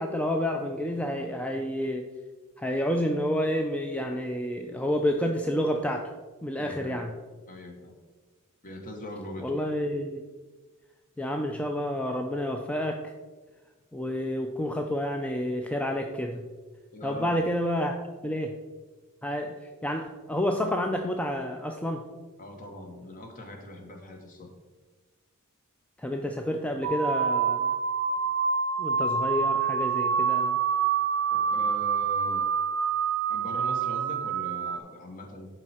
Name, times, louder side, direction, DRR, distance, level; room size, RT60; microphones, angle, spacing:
voice 1, 0.0-2.1 2.6-6.1 6.4-7.1 9.4-10.2 11.2-13.1 13.9-16.5 17.0-18.0 18.2-18.5 19.2-19.5 19.8-22.0 26.0-27.8 28.8-30.6, equal, 5° left, 3 dB, 0.4 m, -29 dB
voice 2, 6.6-7.0 7.5-7.9 8.6-9.6 16.9-17.4 22.4-24.5 31.3-32.5 33.3-35.5, left 1 dB, 40° left, 3 dB, 1.2 m, -41 dB
sound 1, 26.8-34.8, right 6 dB, 55° right, 0.5 m, -27 dB
11.0 x 4.5 x 4.3 m, 1.3 s
head